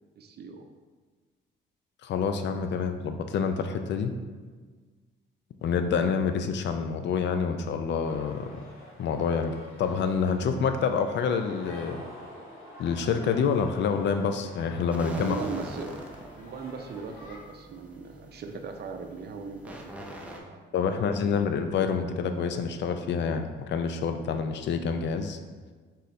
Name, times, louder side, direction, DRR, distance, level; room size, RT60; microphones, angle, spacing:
voice 1, 0.2-0.6 15.1-16.0 16.4-21.4, right 5 dB, 55° right, 5 dB, 0.5 m, -39 dB
voice 2, 2.0-4.1 5.6-8.5 9.0-12.0 12.8-15.4 20.7-25.4, left 6 dB, 65° left, 7 dB, 0.5 m, -27 dB
sound 1, 8.0-17.4, equal, 80° left, 1.1 m, -48 dB
sound 2, 14.9-20.4, right 1 dB, 5° right, 0.6 m, -43 dB
4.2 x 3.8 x 3.1 m, 1.4 s
cardioid pair, 90°, 20 cm